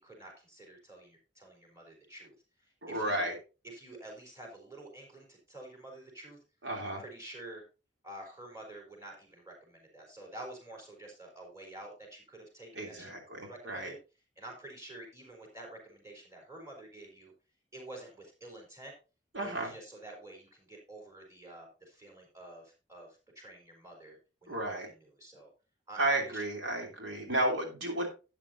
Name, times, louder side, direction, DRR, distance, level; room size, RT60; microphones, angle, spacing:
voice 1, 0.0-2.3 2.6-3.3 3.6-6.4 6.8-7.6 8.0-14.0 14.4-17.3 17.7-18.9 19.4-25.5 25.9-26.5, right 1 dB, 15° right, 1 dB, 4.0 m, -49 dB
voice 2, 2.8-3.4 6.6-7.0 12.7-13.9 19.3-19.7 24.5-24.9 26.0-28.1, right 1 dB, 75° right, 1 dB, 3.2 m, -33 dB
12.5 x 8.9 x 2.8 m, 0.31 s
head